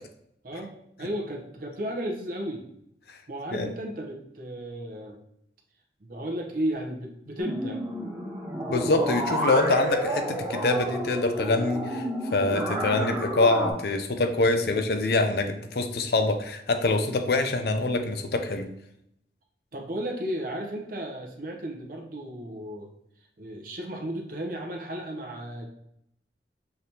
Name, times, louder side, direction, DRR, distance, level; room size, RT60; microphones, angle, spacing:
voice 1, 1.0-2.7 3.3-5.2 6.0-7.8 14.6-14.8 19.7-22.9 23.4-25.7, right 1 dB, 50° right, 1 dB, 0.7 m, -34 dB
sound 1, 7.4-13.7, equal, 15° right, 1.0 m, -30 dB
voice 2, 8.7-12.0 12.3-18.7, left 2 dB, 60° left, 7 dB, 0.5 m, -25 dB
5.7 x 3.3 x 2.8 m, 0.77 s
head